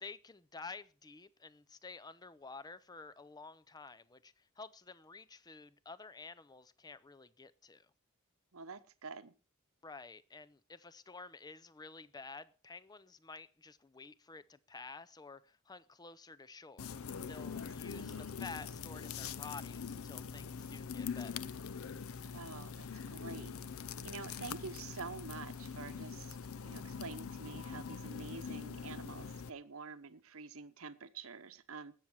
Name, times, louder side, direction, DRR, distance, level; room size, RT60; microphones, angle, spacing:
voice 1, 0.0-7.9 9.8-17.0 17.3-21.5, left 4 dB, 15° left, 0.5 m, -51 dB
voice 2, 8.5-9.3 17.5-18.3 22.3-23.6 24.0-31.9, right 4 dB, 65° right, 0.9 m, -48 dB
sound 1, 16.8-29.5, left 6 dB, 70° left, 0.5 m, -43 dB
19.5 x 7.3 x 4.6 m
head